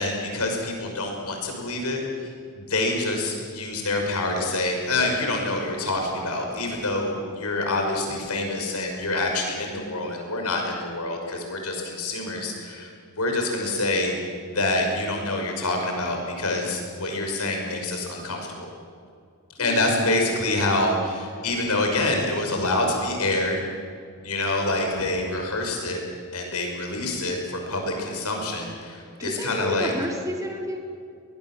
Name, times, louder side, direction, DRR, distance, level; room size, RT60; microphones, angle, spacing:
voice 1, 0.0-2.0 2.6-12.9 13.2-14.1 14.5-18.7 19.6-23.6 24.2-26.0 26.3-29.9, left 2 dB, 90° left, 2 dB, 5.8 m, -26 dB
voice 2, 19.6-20.0 29.2-30.8, equal, 15° right, 1 dB, 3.6 m, -31 dB
23.5 x 20.5 x 7.6 m, 2.3 s
head